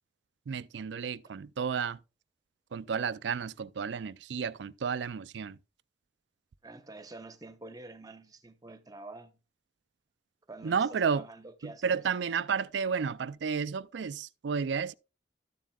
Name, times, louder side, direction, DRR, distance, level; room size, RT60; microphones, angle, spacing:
voice 1, 0.5-2.0 2.7-5.6 10.6-11.2 11.6-14.9, right 6 dB, 75° right, 0.4 m, -32 dB
voice 2, 6.6-9.4 10.5-12.0, right 2 dB, 20° right, 0.9 m, -47 dB
13.0 x 7.5 x 2.3 m
head